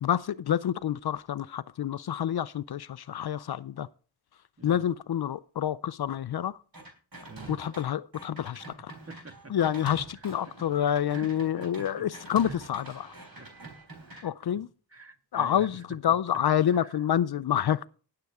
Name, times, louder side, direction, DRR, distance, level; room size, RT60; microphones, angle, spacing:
voice 1, 0.0-3.9 4.6-6.6 7.5-8.9 9.5-13.1 14.2-14.7 15.3-17.9, left 10 dB, 60° left, 0.5 m, -28 dB
sound 1, 6.7-7.8 8.1-14.2, right 2 dB, 55° right, 3.8 m, -45 dB
voice 2, 8.8-9.6 10.1-10.7 11.1-12.1 12.4-12.6 13.4-13.7 14.1-14.6 14.9-16.2 16.7-17.0 17.3-17.4, right 3 dB, 35° right, 1.6 m, -48 dB
19.0 x 6.8 x 3.5 m
cardioid pair, 45°, 43 cm